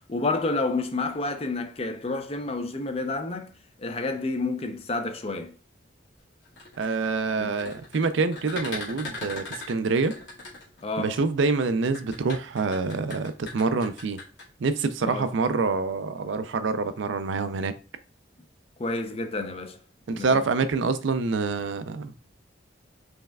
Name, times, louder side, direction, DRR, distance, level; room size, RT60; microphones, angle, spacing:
voice 1, 0.1-3.5 3.8-5.5 7.4-7.5 10.8-11.2 15.0-15.3 18.8-19.8 20.1-20.4, left 3 dB, 30° left, 0.5 m, -29 dB
sound 1, 6.4-11.1 11.8-14.4, left 3 dB, 75° left, 2.0 m, -39 dB
voice 2, 6.8-10.1 11.0-14.2 14.6-17.7 20.1-22.1, right 4 dB, 75° right, 0.4 m, -26 dB
5.3 x 3.3 x 2.3 m
head